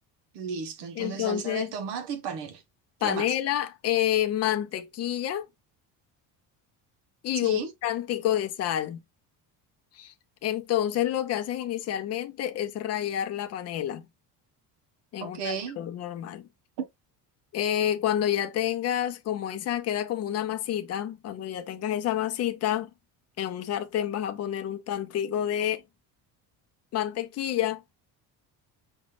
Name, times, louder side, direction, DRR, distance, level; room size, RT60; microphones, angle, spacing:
voice 1, 0.3-2.6 3.0-3.3 7.4-7.7 15.2-15.8, right 6 dB, 80° right, 1.1 m, -34 dB
voice 2, 1.0-1.7 3.0-5.5 7.2-9.0 9.9-10.1 10.4-14.1 15.1-16.5 17.5-22.9 23.4-25.8 26.9-27.8, left 11 dB, 40° left, 0.6 m, -28 dB
5.2 x 2.3 x 3.2 m
cardioid pair, 175°, 40 cm